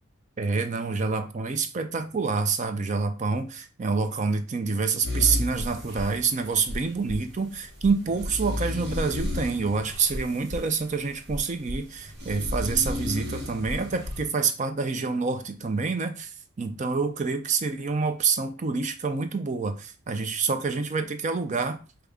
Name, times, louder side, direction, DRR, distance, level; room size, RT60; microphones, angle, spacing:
voice 1, 0.4-16.3 16.6-21.8, right 4 dB, 35° right, 0.5 m, -27 dB
sound 1, 5.0-14.3, left 1 dB, 55° right, 1.0 m, -33 dB
4.9 x 2.3 x 3.5 m
head